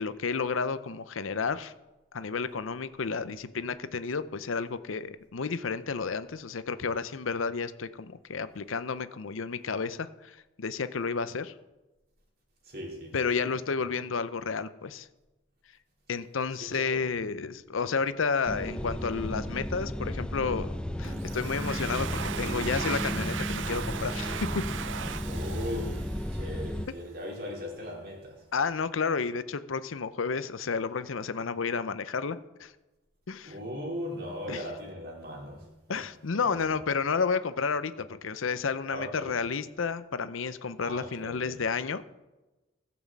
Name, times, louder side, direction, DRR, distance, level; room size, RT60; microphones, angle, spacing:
voice 1, 0.0-1.7 2.1-11.5 13.1-15.1 16.1-20.7 21.0-24.7 28.5-32.7 33.3-33.5 34.5-34.6 35.9-42.0, left 5 dB, 85° left, 0.7 m, -31 dB
voice 2, 12.6-13.3 16.6-17.2 25.2-28.5 33.4-36.1 36.3-36.7 38.9-39.4 40.8-41.7, equal, 50° right, 3.1 m, -39 dB
sound 1, 18.5-26.9, equal, 5° left, 0.4 m, -34 dB
Domestic sounds home sounds, 21.0-26.7, right 8 dB, 70° right, 0.5 m, -38 dB
15.5 x 6.1 x 7.3 m
head